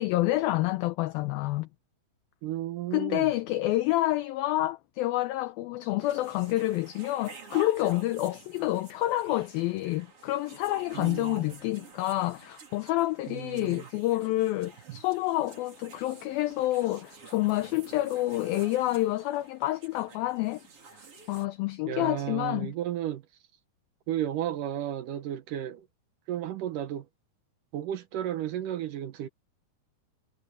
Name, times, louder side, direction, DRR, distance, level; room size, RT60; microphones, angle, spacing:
voice 1, 0.0-1.7 2.9-20.6 21.3-22.7, left 17 dB, 80° left, 2.1 m, -28 dB
voice 2, 2.4-3.3 10.9-11.5 13.3-13.9 21.9-23.2 24.1-25.9 26.3-27.1 27.7-29.3, right 11 dB, 70° right, 2.1 m, -33 dB
sound 1, 6.0-21.5, right 5 dB, 35° right, 3.7 m, -50 dB
omnidirectional pair, 4.9 m